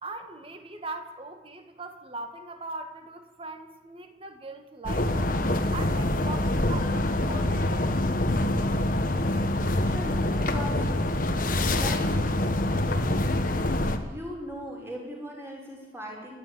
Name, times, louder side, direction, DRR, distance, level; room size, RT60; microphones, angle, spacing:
voice 1, 0.0-5.4 5.7-8.1, right 2 dB, 30° right, 6 dB, 1.9 m, -40 dB
sound 1, 4.9-14.0, left 1 dB, 45° left, 1.4 m, -25 dB
voice 2, 9.8-10.8 11.7-12.3 14.0-16.4, equal, 15° right, -1 dB, 5.4 m, -38 dB
28.0 x 10.5 x 9.5 m, 1.2 s
head